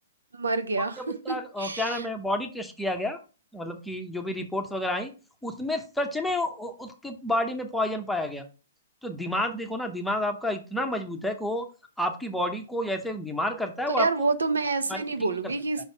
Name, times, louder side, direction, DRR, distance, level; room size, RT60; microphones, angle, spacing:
voice 1, 0.3-1.0 1.3-2.1 14.0-15.8, right 3 dB, 85° right, 0.8 m, -27 dB
voice 2, 1.2-3.2 3.5-5.1 5.4-8.4 9.0-11.7 12.0-14.3 14.9-15.0, left 1 dB, 5° left, 0.8 m, -30 dB
5.4 x 4.1 x 4.5 m
hypercardioid pair, 125°, 0 cm